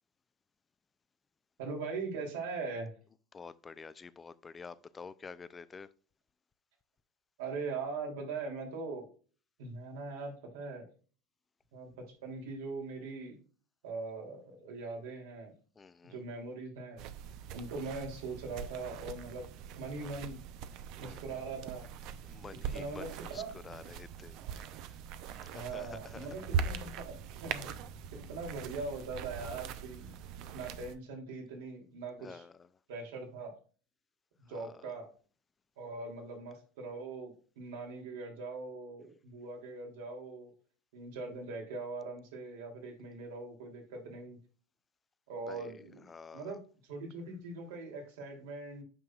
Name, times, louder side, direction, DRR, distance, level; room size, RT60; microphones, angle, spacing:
voice 1, 1.6-2.9 7.4-9.1 9.6-10.9 11.7-13.4 13.8-15.5 16.0-17.1 17.5-19.5 19.8-20.4 21.0-21.9 22.7-23.5 25.5-27.8 28.2-30.1 30.5-32.4 32.9-33.5 34.4-35.1 35.8-40.5 40.9-44.4 45.3-46.1 46.3-48.8, right 3 dB, 80° right, 2.9 m, -41 dB
voice 2, 3.3-5.9 15.8-16.2 21.0-21.4 22.2-26.3 32.2-32.7 34.5-34.8 45.5-46.6, left 5 dB, 20° left, 0.5 m, -50 dB
sound 1, 17.0-31.0, right 7 dB, 55° right, 0.7 m, -41 dB
8.9 x 5.9 x 2.4 m
supercardioid pair, 115°, 0 cm